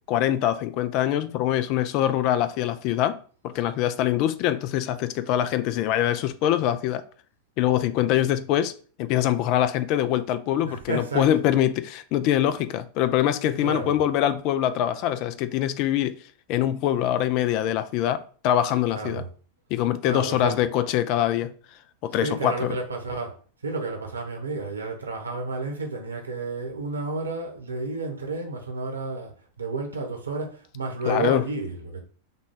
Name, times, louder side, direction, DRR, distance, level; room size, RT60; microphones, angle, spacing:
voice 1, 0.1-3.2 3.4-7.0 7.6-8.7 9.0-16.2 16.5-19.2 19.7-21.5 22.0-22.8 31.1-31.4, left 11 dB, 40° left, 0.4 m, -24 dB
voice 2, 10.6-11.4 13.4-14.0 18.9-19.3 20.0-20.6 22.1-23.3 23.6-29.3 29.6-32.0, right 3 dB, 75° right, 1.1 m, -31 dB
5.7 x 2.3 x 3.7 m
figure-of-eight pair, 90°, 0 cm